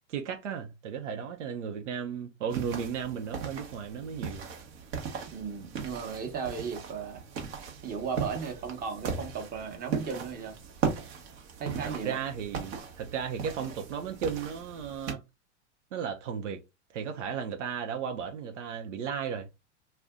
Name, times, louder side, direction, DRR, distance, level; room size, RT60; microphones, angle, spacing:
voice 1, 0.1-4.4 12.0-15.2 15.9-16.6 16.9-19.5, right 7 dB, 85° right, 0.8 m, -35 dB
sound 1, 2.5-15.1, right 6 dB, 60° right, 1.1 m, -38 dB
voice 2, 5.3-7.2 7.8-10.6 11.6-12.2, right 6 dB, 25° right, 1.0 m, -35 dB
2.5 x 2.3 x 3.5 m
hypercardioid pair, 115°, 35 cm